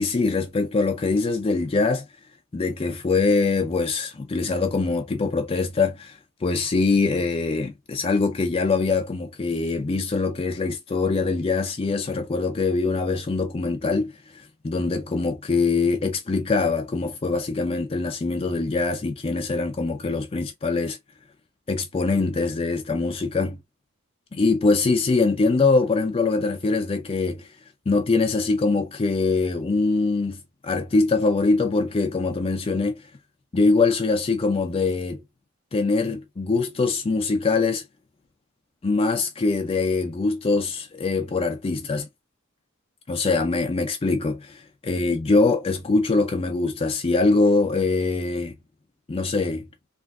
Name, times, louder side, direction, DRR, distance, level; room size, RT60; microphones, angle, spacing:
voice 1, 0.0-2.0 2.5-21.0 21.7-23.6 24.3-27.5 27.9-33.0 33.5-35.2 35.7-37.8 38.8-42.1 43.1-48.5 49.1-49.6, left 3 dB, 25° left, 0.4 m, -23 dB
3.5 x 2.4 x 2.3 m
head